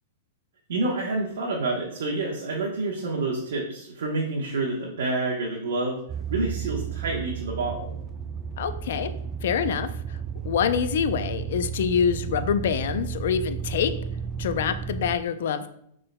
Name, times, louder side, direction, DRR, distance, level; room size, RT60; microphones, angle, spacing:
voice 1, 0.7-6.0 6.3-7.9, right 2 dB, 75° right, -2 dB, 1.0 m, -28 dB
sound 1, 6.1-15.2, right 7 dB, 20° right, 0.3 m, -33 dB
voice 2, 8.6-9.1 9.4-10.2 10.4-13.9 14.4-15.7, left 7 dB, 70° left, 11 dB, 0.5 m, -26 dB
6.4 x 3.7 x 2.2 m, 0.72 s
hypercardioid pair, 140°, 0 cm